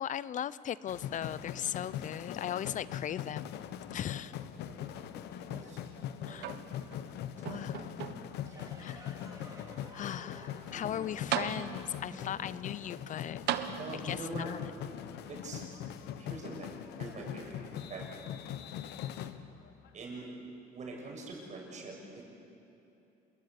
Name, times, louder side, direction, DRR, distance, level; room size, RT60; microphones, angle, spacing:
voice 1, 0.0-3.6 3.9-4.3 6.2-6.5 7.4-8.1 8.8-9.3 9.9-13.5 13.9-14.6, left 10 dB, 50° left, 19 dB, 0.6 m, -38 dB
sound 1, 0.9-19.9, left 10 dB, 80° left, 1.1 m, -42 dB
voice 2, 4.6-5.8 6.3-6.6 7.4-7.6 8.4-8.7 13.8-14.5 15.3-15.6 16.2-17.6 17.9-18.1 19.9-20.3 20.7-21.9, right 3 dB, 45° right, -1 dB, 7.4 m, -44 dB
sound 2, 6.4-7.1 7.5-8.5 9.2-9.3 10.8-10.9 11.3-12.1 13.5-14.3 15.4-15.5, right 11 dB, 80° right, 1.3 m, -37 dB
sound 3, 8.4-13.7, right 2 dB, 20° right, 3.5 m, -53 dB
27.5 x 22.0 x 8.5 m, 2.9 s
cardioid pair, 110°, 17 cm